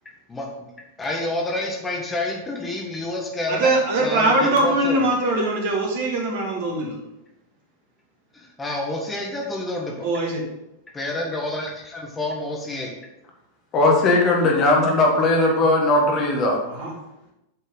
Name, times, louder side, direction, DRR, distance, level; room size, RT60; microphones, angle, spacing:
voice 1, 1.0-5.1 8.3-10.1 10.9-12.9, left 1 dB, 15° left, 0 dB, 1.4 m, -28 dB
voice 2, 3.5-6.9 10.0-10.4 16.8-16.9, right 2 dB, 50° right, 0 dB, 2.1 m, -21 dB
voice 3, 13.7-16.6, left 2 dB, 30° left, 1 dB, 1.7 m, -18 dB
8.1 x 5.3 x 3.9 m, 0.90 s
figure-of-eight pair, 90°, 0 cm